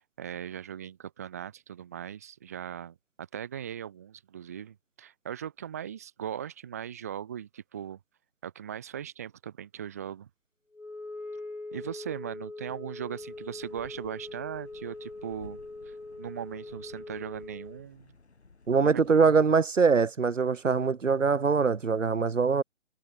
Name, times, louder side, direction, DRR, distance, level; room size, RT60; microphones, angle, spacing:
voice 1, 0.0-8.0 8.4-10.3 11.7-15.6 15.8-18.1 18.8-19.0, right 9 dB, 15° right, 0.9 m, -39 dB
Wind instrument woodwind instrument, 10.7-17.9, left 2 dB, 85° left, 2.3 m, -42 dB
sound 1, 13.2-19.3, left 4 dB, 60° left, 5.9 m, -56 dB
voice 2, 18.7-22.6, right 5 dB, 80° right, 0.9 m, -23 dB
figure-of-eight pair, 150°, 37 cm